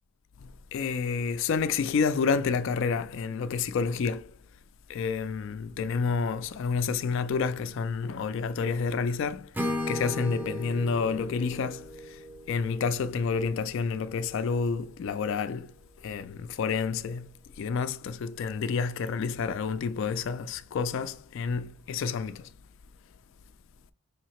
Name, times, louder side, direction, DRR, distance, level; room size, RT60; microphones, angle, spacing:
voice 1, 0.4-4.3 4.9-15.7 16.0-22.5, left 5 dB, 60° left, 0.3 m, -29 dB
Acoustic guitar / Strum, 9.5-13.5, left 1 dB, 10° right, 0.5 m, -36 dB
4.9 x 2.8 x 3.0 m
head